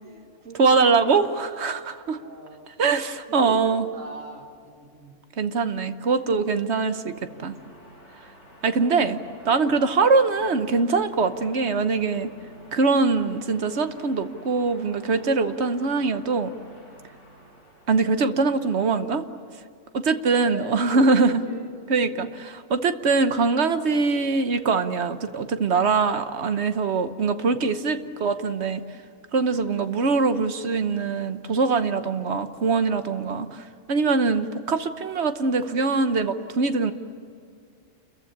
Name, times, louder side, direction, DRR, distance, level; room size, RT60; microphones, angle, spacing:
voice 1, 0.0-1.1 2.2-2.7 3.3-5.2 7.3-7.7 8.7-9.0 20.3-22.2 28.0-28.4, right 2 dB, 85° right, 3 dB, 2.5 m, -41 dB
voice 2, 0.6-2.2 2.8-3.9 5.4-7.1 7.4-7.5 8.6-12.3 12.7-16.5 17.9-19.2 19.9-21.4 21.9-28.8 29.3-36.9, right 4 dB, 60° right, 10 dB, 1.3 m, -23 dB
sound 1, 6.8-18.2, right 1 dB, 60° left, 5.4 m, -50 dB
29.0 x 15.0 x 9.8 m, 2.3 s
omnidirectional pair, 1.3 m